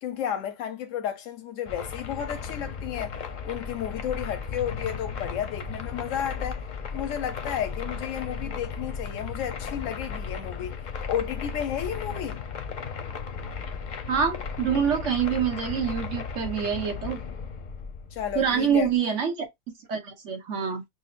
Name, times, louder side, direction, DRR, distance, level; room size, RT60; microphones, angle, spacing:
voice 1, 0.0-3.2 3.4-6.6 6.9-12.4 18.1-18.9, left 9 dB, 90° left, 1.0 m, -32 dB
sound 1, 1.7-19.0, left 5 dB, 50° left, 0.6 m, -35 dB
voice 2, 14.1-17.2 18.3-19.3 19.9-20.8, right 7 dB, 70° right, 1.3 m, -26 dB
6.1 x 2.0 x 2.4 m
omnidirectional pair, 1.3 m